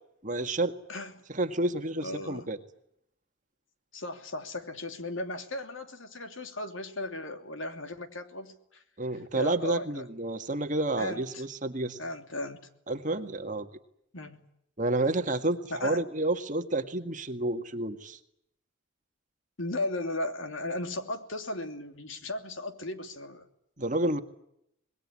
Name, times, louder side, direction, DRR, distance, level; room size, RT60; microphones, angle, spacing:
voice 1, 0.2-0.8 1.3-2.6 9.0-12.0 12.9-13.7 14.8-18.2 23.8-24.2, right 2 dB, 40° right, 7 dB, 1.9 m, -30 dB
voice 2, 2.0-2.5 3.9-8.8 9.3-10.1 11.0-11.4 12.0-12.6 14.1-14.4 15.7-16.0 19.6-23.5, left 1 dB, 70° left, 7 dB, 2.9 m, -36 dB
25.5 x 21.0 x 9.9 m, 0.78 s
head